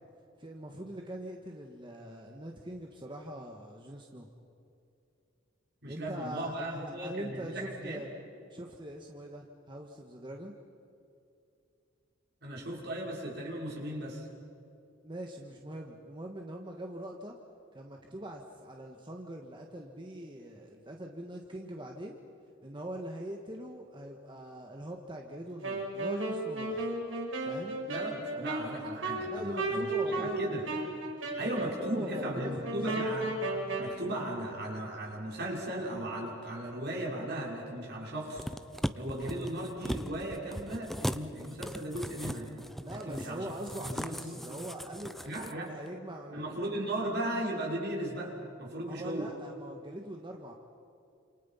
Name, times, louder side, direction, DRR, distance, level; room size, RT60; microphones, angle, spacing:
voice 1, 0.4-4.3 5.9-8.1 8.5-10.5 15.0-17.3 17.7-22.2 22.6-26.9 27.4-27.8 29.3-30.8 31.4-33.1 42.8-46.8 47.1-47.3 48.8-50.5, right 1 dB, 25° right, 1 dB, 1.7 m, -42 dB
voice 2, 5.8-8.0 12.4-14.3 27.9-30.6 31.4-33.3 33.8-38.5 38.9-42.5 42.9-43.5 43.8-44.4 45.2-45.7 46.3-49.3, right 1 dB, 55° right, -2 dB, 6.2 m, -37 dB
Wind instrument woodwind instrument, 25.6-33.9, right 2 dB, 75° right, 5.9 m, -35 dB
sound 1, 38.3-45.5 45.9-46.0, equal, ahead, 0.6 m, -39 dB
30.0 x 28.0 x 5.8 m, 2.7 s
head